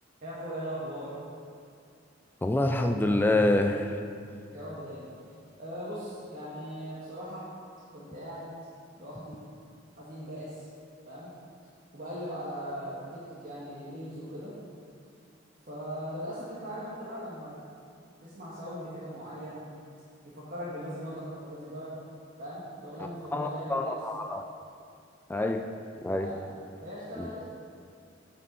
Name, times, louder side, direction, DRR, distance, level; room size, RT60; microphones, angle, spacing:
voice 1, 0.2-1.2 4.5-5.1 5.6-7.5 7.9-8.5 9.0-9.4 10.0-10.7 11.1-11.3 11.9-14.6 15.7-17.6 18.2-19.6 20.2-21.9 22.4-23.9 26.1-26.4 26.8-27.4, equal, 50° right, -9 dB, 1.5 m, -39 dB
voice 2, 2.4-4.0 23.3-24.4 25.3-25.7 26.0-26.3 27.2-27.3, left 1 dB, 10° left, 5 dB, 0.3 m, -26 dB
8.3 x 5.4 x 5.2 m, 2.4 s
head